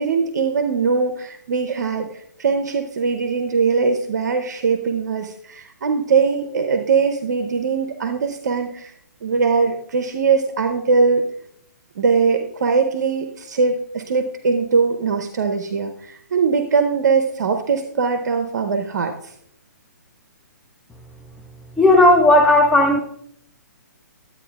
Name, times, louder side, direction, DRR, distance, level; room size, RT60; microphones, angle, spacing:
voice 1, 0.0-8.9 9.2-11.2 12.0-19.3, right 5 dB, 70° right, 6 dB, 0.7 m, -21 dB
voice 2, 21.8-23.0, left 2 dB, ahead, 1 dB, 0.3 m, -13 dB
11.5 x 8.6 x 2.4 m, 0.71 s
hypercardioid pair, 145°, 10 cm